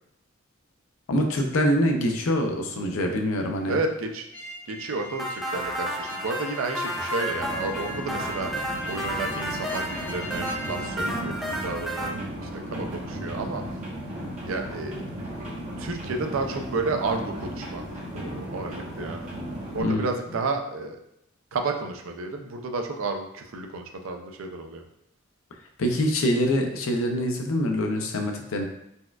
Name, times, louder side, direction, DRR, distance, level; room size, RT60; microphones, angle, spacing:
voice 1, 1.1-3.8 19.7-20.1 25.8-28.7, equal, 75° left, 3 dB, 0.5 m, -24 dB
voice 2, 3.7-4.3 4.7-8.5 8.9-13.6 14.4-15.0 15.8-17.8 18.1-19.3 19.7-21.0 21.5-24.8, right 3 dB, 70° right, 4 dB, 0.4 m, -31 dB
sound 1, 4.3-10.9, left 2 dB, 25° left, 1.1 m, -41 dB
sound 2, 5.2-12.1, equal, ahead, 0.4 m, -32 dB
sound 3, 7.3-19.8, right 1 dB, 35° right, 1.0 m, -35 dB
4.1 x 2.3 x 2.3 m, 0.78 s
head